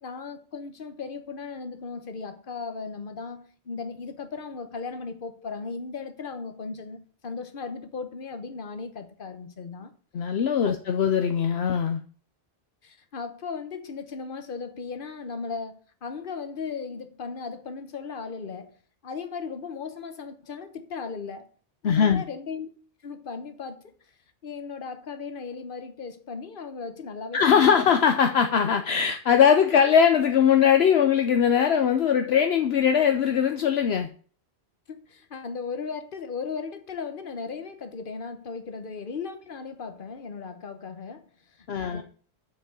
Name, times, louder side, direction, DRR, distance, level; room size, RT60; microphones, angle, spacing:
voice 1, 0.0-9.9 10.6-10.8 12.8-15.7 16.0-18.7 19.0-21.5 21.8-22.7 23.0-23.9 24.4-27.9 34.9-41.3 41.6-42.0, left 5 dB, 50° left, 1.2 m, -36 dB
voice 2, 10.1-12.0 21.8-22.2 27.3-34.1 41.7-42.0, left 7 dB, 65° left, 1.0 m, -21 dB
7.3 x 6.4 x 6.9 m
omnidirectional pair, 1.1 m